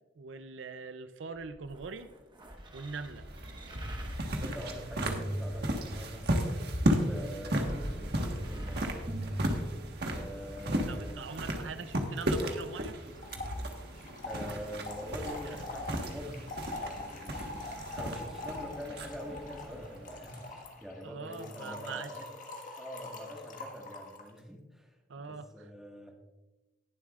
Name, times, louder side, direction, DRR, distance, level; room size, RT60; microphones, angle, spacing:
voice 1, 0.2-2.1 2.7-3.3 7.5-7.9 10.9-13.0 13.6-13.7 21.0-22.1 25.1-25.7, right 4 dB, 80° right, 11 dB, 0.6 m, -42 dB
sound 1, 1.4-6.3 7.0-10.3 11.1-11.2, right 1 dB, 25° right, 1.3 m, -41 dB
sound 2, 3.0-20.6, equal, 60° right, 1.4 m, -35 dB
voice 2, 4.4-6.4 6.8-8.8 10.1-11.2 14.3-22.3 22.7-26.1, equal, ahead, 0 dB, 1.6 m, -45 dB
Trickle dribble / Fill (with liquid), 10.6-10.7 10.9-11.0 11.2-24.3, left 2 dB, 45° left, 1.6 m, -44 dB
19.5 x 7.5 x 2.4 m, 1.1 s
head